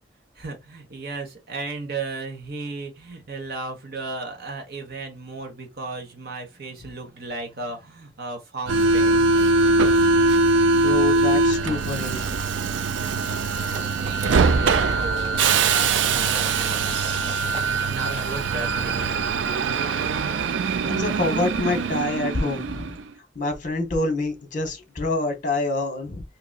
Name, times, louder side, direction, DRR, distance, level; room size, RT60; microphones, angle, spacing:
voice 1, 0.3-9.3 14.0-19.3, right 3 dB, 55° right, 1.1 m, -35 dB
Subway metro underground, 8.7-23.0, right 3 dB, 80° right, 0.4 m, -22 dB
voice 2, 10.7-12.3 20.8-23.0 23.3-26.2, left 2 dB, 40° left, 1.0 m, -26 dB
Rattle, 13.7-20.3, right 2 dB, 30° right, 0.6 m, -41 dB
3.8 x 2.8 x 2.3 m
head